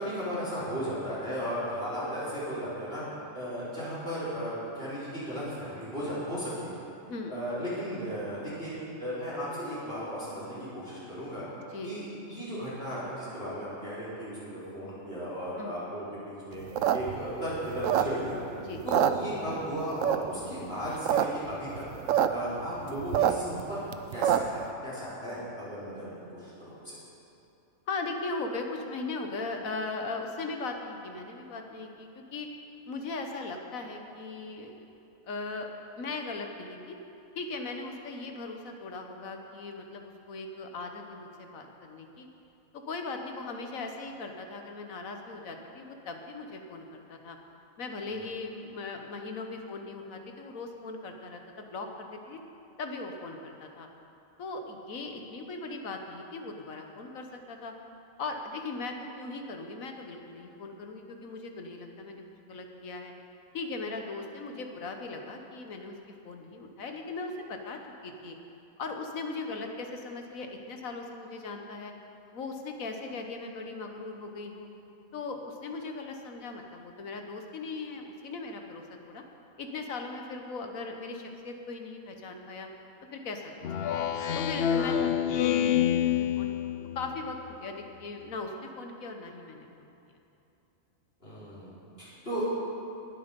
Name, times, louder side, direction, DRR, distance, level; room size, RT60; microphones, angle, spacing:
voice 1, 0.0-3.0 3.3-6.8 7.3-8.7 9.0-11.4 11.8-16.6 16.9-18.4 18.8-23.8 24.1-27.0 48.1-48.2 91.2-92.5, equal, 45° left, -10 dB, 4.0 m, -35 dB
sound 1, 16.6-18.4 18.8-19.7 20.0-20.5 20.9-21.2 21.5-21.6 21.8-22.3 22.6-24.6, right 10 dB, 70° right, 0.9 m, -25 dB
voice 2, 27.9-32.5 32.8-34.9 35.2-35.7 36.0-37.0 37.3-42.3 42.7-47.4 47.8-52.4 52.8-53.9 54.4-57.7 58.2-62.2 62.5-63.1 63.5-65.9 66.2-68.4 68.8-71.9 72.3-74.7 75.1-79.2 79.6-82.7 83.1-83.7 84.3-86.5 86.9-89.9, left 3 dB, 80° left, 4 dB, 1.6 m, -39 dB
Speech synthesizer, 83.6-87.2, left 9 dB, 60° left, 0.7 m, -27 dB
20.5 x 8.1 x 5.3 m, 2.8 s
omnidirectional pair, 1.4 m